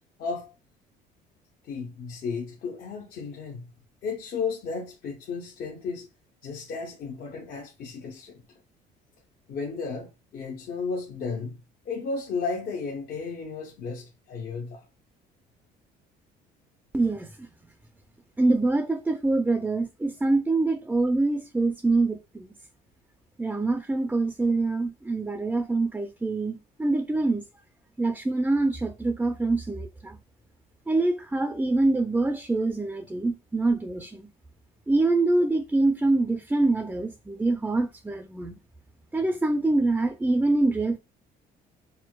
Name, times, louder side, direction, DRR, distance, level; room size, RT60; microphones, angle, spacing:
voice 1, 0.2-0.5 1.6-3.7 4.0-6.1 6.4-8.4 9.5-14.9, left 4 dB, 60° left, 0.7 m, -34 dB
voice 2, 16.9-17.5 18.4-22.5 23.4-27.4 28.0-30.2 30.9-34.2 34.9-38.5 39.1-41.0, right 2 dB, 10° right, 0.4 m, -25 dB
4.5 x 2.1 x 2.2 m
cardioid pair, 110°, 17 cm